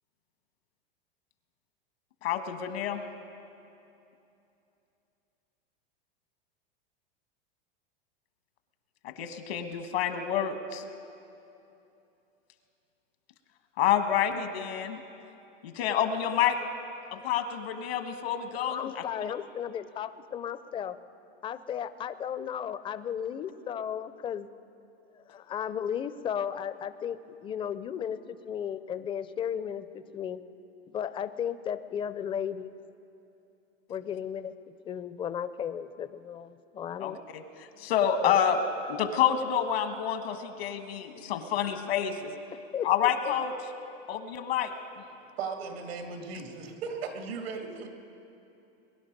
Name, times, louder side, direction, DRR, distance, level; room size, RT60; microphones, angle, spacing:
voice 1, 2.2-3.0 9.0-10.8 13.8-15.0 15.6-16.6 17.1-19.0 37.0-37.4 37.8-38.6 38.9-42.3 42.8-43.5 44.1-44.7, left 9 dB, 85° left, 8 dB, 1.4 m, -28 dB
voice 2, 18.7-21.0 21.4-24.5 25.3-30.4 30.9-32.8 33.9-34.5 34.8-37.2 37.8-37.9 38.2-38.4 42.7-43.3, left 8 dB, 20° left, 13 dB, 0.4 m, -35 dB
voice 3, 45.4-47.9, right 5 dB, 85° right, 4 dB, 2.1 m, -37 dB
22.5 x 11.0 x 5.2 m, 2.8 s
supercardioid pair, 125°, 30 cm